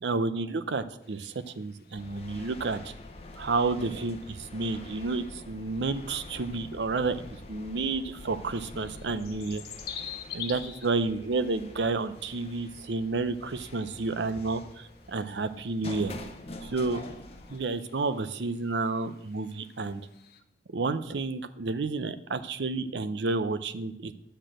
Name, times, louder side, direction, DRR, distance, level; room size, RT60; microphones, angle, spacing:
voice 1, 0.0-2.9 3.4-7.2 7.5-9.6 10.3-16.1 16.6-17.0 17.5-20.0 20.7-24.1, right 3 dB, 85° right, 12 dB, 0.6 m, -30 dB
sound 1, 1.0-20.4, left 8 dB, 60° left, 0.9 m, -49 dB
sound 2, 2.0-17.6, left 2 dB, 35° left, 0.8 m, -46 dB
9.8 x 4.4 x 7.6 m, 0.79 s
head